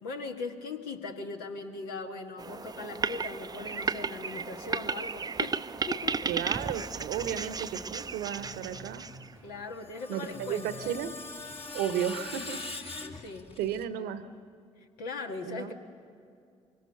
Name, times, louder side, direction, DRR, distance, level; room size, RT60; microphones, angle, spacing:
voice 1, 0.0-6.2 9.4-11.0 13.0-13.5 15.0-15.7, left 4 dB, 70° left, 3 dB, 1.7 m, -39 dB
sound 1, 2.4-9.3, right 5 dB, 25° right, 0.6 m, -34 dB
voice 2, 6.3-9.1 10.1-11.2 11.7-12.6 13.6-14.3 15.4-15.7, right 9 dB, 70° right, 12 dB, 1.0 m, -33 dB
sound 2, 7.2-12.6, right 3 dB, 85° left, 6.0 m, -53 dB
Screech, 9.6-13.8, left 3 dB, 35° left, 1.9 m, -42 dB
24.5 x 23.5 x 7.0 m, 2.4 s
figure-of-eight pair, 45°, 17 cm